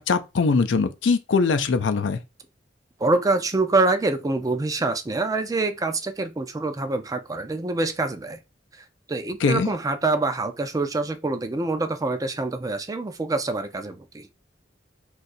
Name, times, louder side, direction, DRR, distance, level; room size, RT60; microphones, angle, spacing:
voice 1, 0.0-2.2 9.4-9.7, left 4 dB, 85° left, 0.5 m, -22 dB
voice 2, 3.0-8.4 9.1-14.3, right 3 dB, 20° right, 0.4 m, -25 dB
2.7 x 2.4 x 4.0 m
head